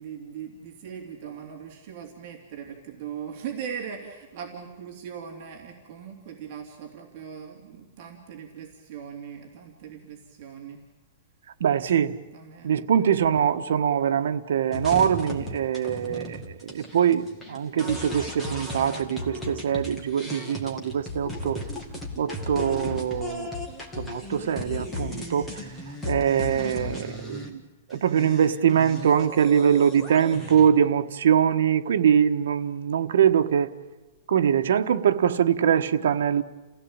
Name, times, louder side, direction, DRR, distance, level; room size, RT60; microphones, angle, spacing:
voice 1, 0.0-10.8 12.3-13.1, right 8 dB, 35° right, 2.9 m, -40 dB
voice 2, 11.6-12.2 12.6-21.6 22.2-23.5 24.0-25.6 26.0-27.6 27.9-33.7 34.3-36.4, right 8 dB, 75° right, 1.4 m, -23 dB
sound 1, 14.7-27.5 27.9-30.7, left 2 dB, 10° left, 2.2 m, -35 dB
29.5 x 16.5 x 8.8 m
supercardioid pair, 180°, 0 cm